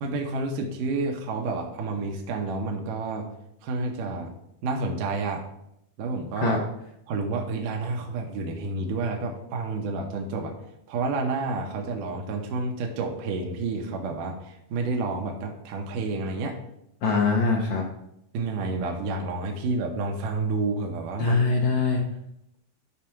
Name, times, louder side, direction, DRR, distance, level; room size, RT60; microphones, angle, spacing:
voice 1, 0.0-3.3 3.6-4.3 4.6-5.4 6.0-6.6 7.1-10.5 10.9-16.6 18.3-21.4, right 3 dB, 70° right, 2 dB, 2.5 m, -29 dB
voice 2, 17.0-17.9 21.2-22.0, left 4 dB, 65° left, -1 dB, 2.0 m, -22 dB
11.5 x 4.0 x 5.8 m, 0.79 s
omnidirectional pair, 4.2 m